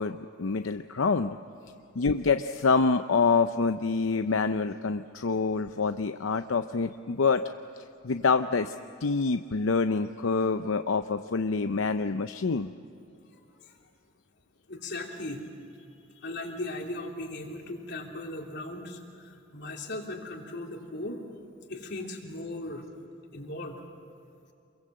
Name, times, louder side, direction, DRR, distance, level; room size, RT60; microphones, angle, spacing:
voice 1, 0.0-1.4 2.0-7.4 8.0-8.8 9.0-12.7, left 4 dB, 85° left, 9 dB, 0.6 m, -26 dB
voice 2, 13.3-13.7 14.7-15.4 16.2-21.2 21.7-22.8 23.3-23.8, left 2 dB, 60° left, 1 dB, 3.3 m, -38 dB
28.0 x 22.5 x 7.7 m, 2.5 s
head